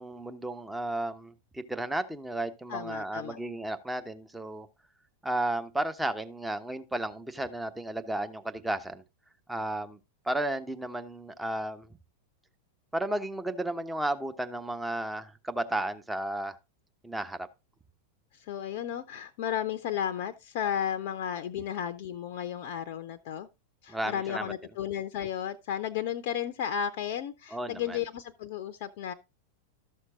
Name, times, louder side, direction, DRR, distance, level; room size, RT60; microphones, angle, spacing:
voice 1, 0.0-4.7 5.2-9.0 9.5-10.0 10.2-11.9 12.9-16.6 17.0-17.5 23.9-24.5 27.5-28.0, right 1 dB, 5° right, 1.0 m, -33 dB
voice 2, 2.7-3.4 18.5-23.5 23.8-29.1, left 9 dB, 50° left, 0.7 m, -33 dB
13.0 x 6.5 x 3.7 m
figure-of-eight pair, 90°, 0 cm